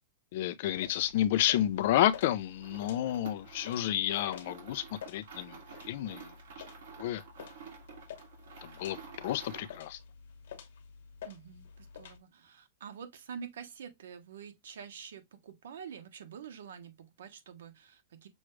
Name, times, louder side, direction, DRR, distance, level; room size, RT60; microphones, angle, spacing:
voice 1, 0.3-5.6 5.9-6.3 7.0-7.2 8.6-10.0, left 12 dB, 50° left, 0.4 m, -30 dB
sound 1, 0.8-12.2, left 7 dB, 80° left, 1.0 m, -51 dB
sound 2, 2.5-9.9, right 6 dB, 65° right, 1.9 m, -51 dB
voice 2, 11.2-18.3, right 7 dB, 85° right, 1.0 m, -47 dB
6.2 x 2.3 x 3.1 m
supercardioid pair, 175°, 0 cm